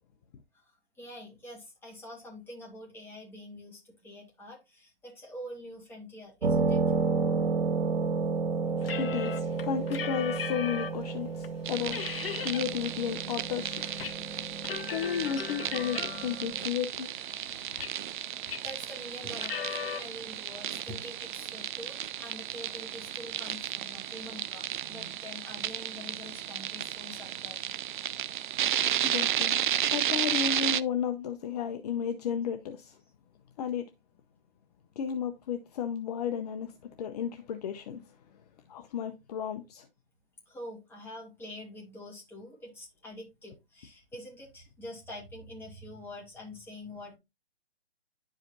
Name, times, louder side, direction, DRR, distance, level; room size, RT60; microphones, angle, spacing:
voice 1, 1.0-6.8 18.6-27.8 40.5-47.2, left 1 dB, 5° left, 2.4 m, -45 dB
sound 1, 6.4-16.6, right 4 dB, 80° right, 2.1 m, -32 dB
sound 2, 8.8-11.0 11.4-11.5 11.9-12.6 13.0-14.1 14.4-16.5 17.0-18.2 18.5-18.8 19.3-20.0, left 7 dB, 65° left, 1.0 m, -38 dB
voice 2, 9.0-12.0 12.4-13.8 14.9-17.1 29.0-29.6 29.9-33.0 33.6-33.8 35.0-36.7 37.0-38.0 38.7-39.9, left 8 dB, 40° left, 0.7 m, -33 dB
sound 3, 11.7-30.8, right 11 dB, 55° right, 0.5 m, -33 dB
10.5 x 5.0 x 2.7 m
hypercardioid pair, 145°, 31 cm